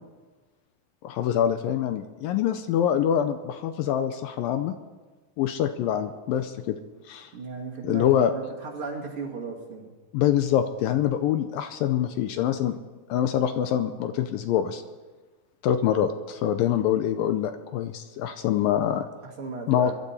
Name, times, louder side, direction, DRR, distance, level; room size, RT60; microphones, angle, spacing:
voice 1, 1.0-4.7 5.4-6.8 7.1-7.3 7.8-8.3 10.1-12.8 13.1-14.8 15.6-19.1 19.7-19.9, left 10 dB, 80° left, 9 dB, 2.3 m, -25 dB
voice 2, 7.3-9.9 19.2-19.9, right 4 dB, 40° right, -3 dB, 2.9 m, -36 dB
22.5 x 12.5 x 4.2 m, 1.3 s
omnidirectional pair, 4.3 m